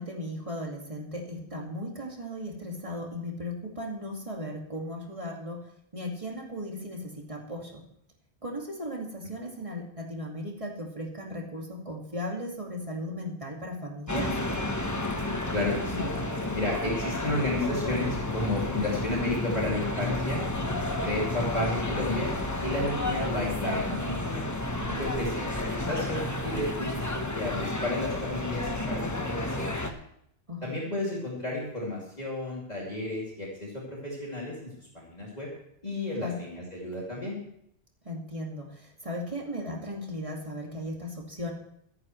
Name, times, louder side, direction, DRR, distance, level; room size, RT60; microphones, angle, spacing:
voice 1, 0.0-5.6 5.9-7.8 8.4-14.3 24.8-25.0 30.5-30.7 36.2-36.4 38.0-41.5, equal, 30° right, 0 dB, 2.3 m, -36 dB
sound 1, 14.1-29.9, left 2 dB, 15° left, 1.0 m, -31 dB
voice 2, 15.5-16.1 16.5-20.4 21.0-22.3 22.6-24.4 25.0-29.7 30.6-35.5 35.8-37.4, left 2 dB, 35° left, -4 dB, 2.8 m, -32 dB
23.0 x 10.5 x 3.2 m, 0.73 s
omnidirectional pair, 1.2 m